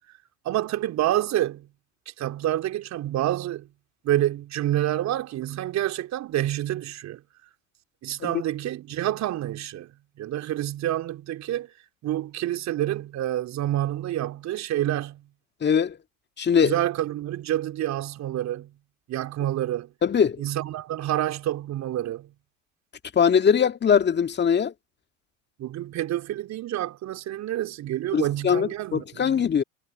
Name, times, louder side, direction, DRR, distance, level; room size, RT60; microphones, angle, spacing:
voice 1, 0.5-1.7 2.2-3.7 4.0-7.2 8.0-11.8 12.0-15.3 16.6-18.7 19.1-19.9 20.4-22.3 25.6-29.4, right 13 dB, 45° right, 3.6 m, -28 dB
voice 2, 15.6-16.0 16.4-16.7 20.0-20.4 23.1-24.7 28.1-29.6, left 7 dB, 25° left, 2.0 m, -21 dB
figure-of-eight pair, 70°, 39 cm